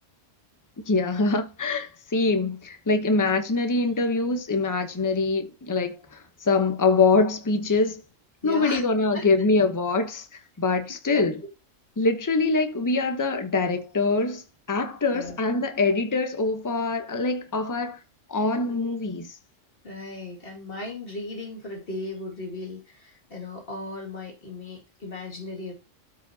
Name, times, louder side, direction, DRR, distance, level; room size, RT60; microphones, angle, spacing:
voice 1, 0.8-8.0 8.4-11.4 12.0-18.0 18.3-19.4, left 3 dB, 15° left, 0.8 m, -24 dB
voice 2, 8.4-8.8 9.1-9.3 11.1-11.3 15.1-15.6 19.8-25.7, left 2 dB, 45° left, 2.5 m, -36 dB
13.0 x 5.0 x 2.8 m
omnidirectional pair, 1.3 m